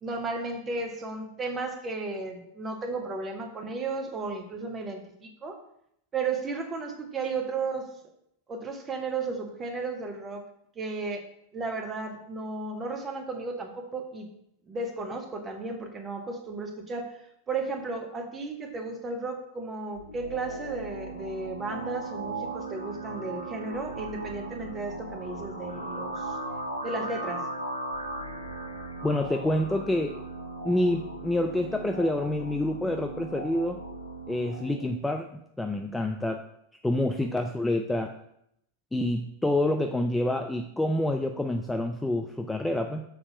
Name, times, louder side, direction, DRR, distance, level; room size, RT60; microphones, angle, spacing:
voice 1, 0.0-5.6 6.1-7.9 8.5-10.4 10.7-11.2 11.5-14.3 14.7-26.4 26.8-27.5 37.2-37.3, right 3 dB, 20° right, 4 dB, 1.2 m, -34 dB
sound 1, 19.9-34.9, right 2 dB, 85° right, 0.7 m, -37 dB
voice 2, 29.0-30.2 30.6-33.8 34.3-36.4 36.8-38.1 38.9-43.0, left 1 dB, 5° left, 4 dB, 0.4 m, -27 dB
6.9 x 4.2 x 5.6 m, 0.74 s
figure-of-eight pair, 90°, 0 cm